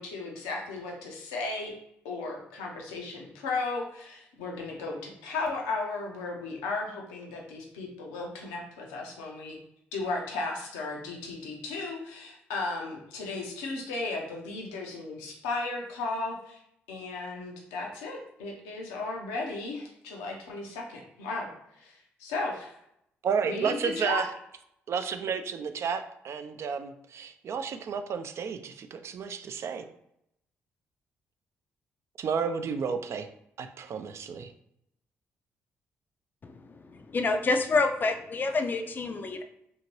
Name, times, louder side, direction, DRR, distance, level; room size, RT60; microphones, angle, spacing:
voice 1, 0.0-1.7 2.0-9.6 9.9-16.6 16.9-21.5 21.8-22.7 23.4-24.2, left 3 dB, 80° left, 0 dB, 0.6 m, -35 dB
voice 2, 23.2-24.3 24.9-29.8 32.2-33.3 33.6-34.5, right 6 dB, 55° right, 9 dB, 0.3 m, -31 dB
voice 3, 36.4-39.4, left 3 dB, 35° left, 6 dB, 0.4 m, -28 dB
2.8 x 2.6 x 2.9 m, 0.75 s
hypercardioid pair, 45°, 6 cm